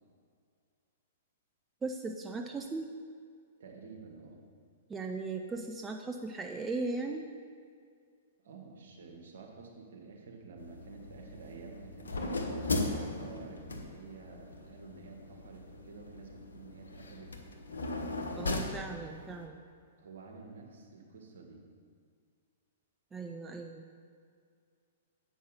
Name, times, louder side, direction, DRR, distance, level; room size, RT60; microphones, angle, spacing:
voice 1, 1.8-3.0 4.9-7.3 18.4-19.6 23.1-23.9, right 3 dB, 15° right, 3 dB, 0.5 m, -38 dB
voice 2, 3.6-4.4 8.4-17.3 20.0-21.6, right 4 dB, 65° right, 1 dB, 1.7 m, -50 dB
sound 1, 10.6-19.5, left 2 dB, 75° left, 1.0 m, -38 dB
8.5 x 5.4 x 6.6 m, 2.2 s
figure-of-eight pair, 110°, 0 cm